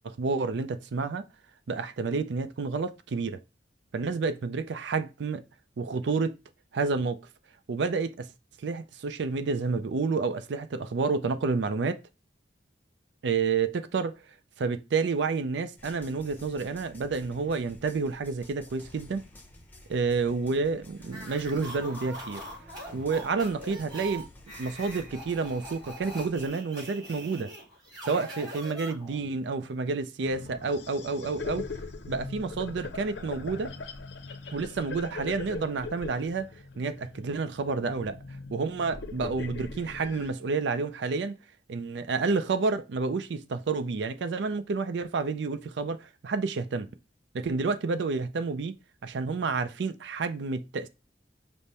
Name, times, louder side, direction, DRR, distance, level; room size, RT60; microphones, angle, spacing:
voice 1, 0.0-1.3 1.7-3.4 3.9-5.4 5.8-6.4 6.7-7.2 7.7-8.3 8.6-12.0 13.2-14.2 14.6-19.3 19.9-22.4 22.9-24.3 24.6-27.5 28.0-31.6 32.1-33.7 34.5-36.5 36.8-38.2 38.5-41.4 41.7-46.9 47.3-48.8 49.0-50.9, right 4 dB, 70° right, 0.4 m, -29 dB
sound 1, 15.8-26.5, left 1 dB, 10° left, 0.7 m, -51 dB
sound 2, 21.1-29.3, equal, 25° right, 2.7 m, -43 dB
sound 3, 30.2-40.3, left 4 dB, 75° left, 0.6 m, -40 dB
5.1 x 2.1 x 4.1 m
head